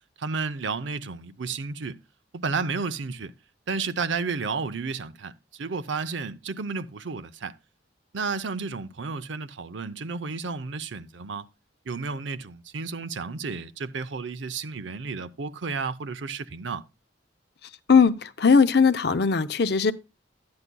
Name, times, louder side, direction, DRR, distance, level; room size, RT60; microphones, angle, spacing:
voice 1, 0.2-2.0 2.3-3.3 3.7-7.5 8.1-11.5 11.9-16.8, right 4 dB, 80° right, 0.6 m, -32 dB
voice 2, 17.9-19.9, left 5 dB, 60° left, 0.6 m, -19 dB
12.0 x 9.6 x 2.2 m
head